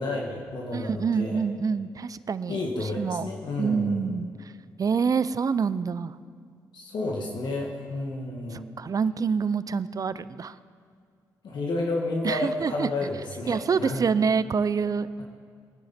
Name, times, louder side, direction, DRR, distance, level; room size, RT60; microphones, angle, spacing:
voice 1, 0.0-1.4 2.5-4.1 6.7-8.7 11.4-14.0, left 2 dB, 65° left, -1 dB, 1.8 m, -31 dB
voice 2, 0.7-3.3 3.6-4.5 4.8-6.1 8.8-10.6 12.2-12.9 13.5-15.1, right 5 dB, 45° right, 16 dB, 0.6 m, -26 dB
21.0 x 9.7 x 4.4 m, 2.2 s
supercardioid pair, 55°, 8 cm